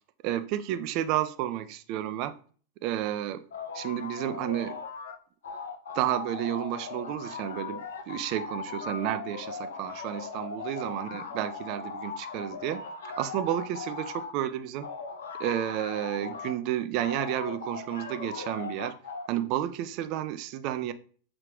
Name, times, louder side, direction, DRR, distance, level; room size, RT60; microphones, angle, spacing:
voice 1, 0.2-2.3 2.8-3.4 3.7-4.8 5.9-12.8 13.2-14.9 15.4-19.0 19.3-20.9, right 12 dB, 40° right, 0.4 m, -31 dB
sound 1, 3.5-5.2 5.4-14.3 14.8-16.6 17.0-19.3, left 5 dB, 65° left, 0.5 m, -39 dB
6.2 x 2.4 x 3.5 m
figure-of-eight pair, 90°, 0 cm